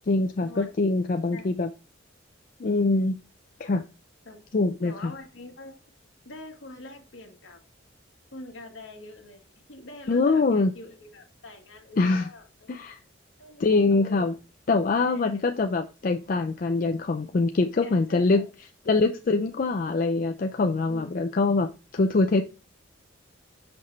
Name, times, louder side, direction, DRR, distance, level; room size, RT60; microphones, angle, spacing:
voice 1, 0.1-1.7 2.6-3.2 3.6-3.8 4.5-5.1 10.1-10.7 12.0-12.3 12.7-13.0 13.6-14.3 14.7-18.4 18.9-22.4, left 3 dB, 45° left, 0.4 m, -24 dB
voice 2, 4.8-5.7 6.2-7.6 8.3-9.4 9.7-13.0 13.4-14.4 14.9-15.4 17.8-18.5 20.9-21.1, left 2 dB, 75° left, 1.6 m, -45 dB
5.9 x 5.2 x 3.1 m
head